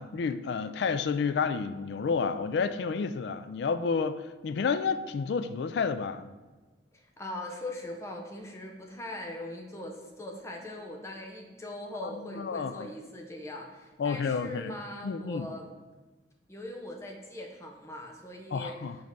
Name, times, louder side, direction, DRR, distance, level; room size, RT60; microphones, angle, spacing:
voice 1, 0.0-6.3 12.2-12.9 14.0-14.7 15.0-15.5 18.5-19.0, left 5 dB, 65° left, 11 dB, 0.3 m, -30 dB
voice 2, 6.9-15.7 16.5-18.8, left 1 dB, 15° left, 1 dB, 0.7 m, -41 dB
5.3 x 4.5 x 5.2 m, 1.2 s
head